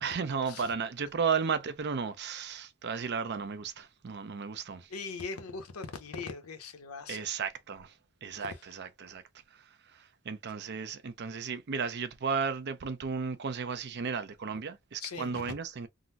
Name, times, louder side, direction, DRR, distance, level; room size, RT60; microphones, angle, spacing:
voice 1, 0.0-4.9 7.1-7.9 8.2-9.2 9.5-15.9, right 6 dB, 50° right, 0.5 m, -34 dB
voice 2, 4.9-7.2 8.3-8.5 15.0-15.5, left 4 dB, 80° left, 0.8 m, -40 dB
3.7 x 2.0 x 2.7 m
head